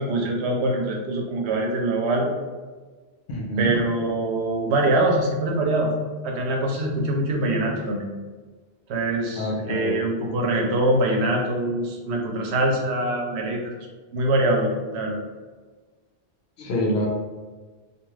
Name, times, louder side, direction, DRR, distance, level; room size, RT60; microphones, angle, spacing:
voice 1, 0.0-2.3 3.6-5.9 6.2-8.1 8.9-13.7 14.1-15.2, right 1 dB, 90° right, 1 dB, 0.9 m, -24 dB
voice 2, 3.3-3.8 9.4-10.0 16.6-17.1, equal, 75° left, -2 dB, 0.8 m, -26 dB
2.3 x 2.3 x 3.0 m, 1.3 s
omnidirectional pair, 1.1 m